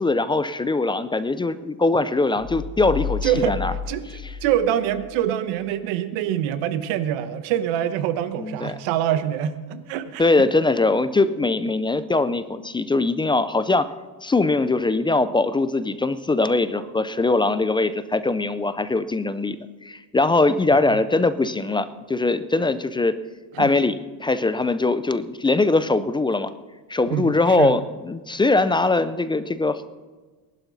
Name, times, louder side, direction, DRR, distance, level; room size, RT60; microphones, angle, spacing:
voice 1, 0.0-3.7 8.4-8.8 10.2-13.9 14.2-19.6 19.8-23.2 23.6-26.5 26.9-29.9, left 3 dB, 10° left, 13 dB, 0.3 m, -21 dB
sound 1, 2.4-5.1, left 6 dB, 55° left, 2.2 m, -32 dB
voice 2, 3.2-3.6 3.9-10.5 20.7-20.8 23.5-23.7 27.1-27.7, right 10 dB, 80° right, 12 dB, 1.2 m, -25 dB
20.0 x 11.5 x 4.0 m, 1.3 s
cardioid pair, 125°, 46 cm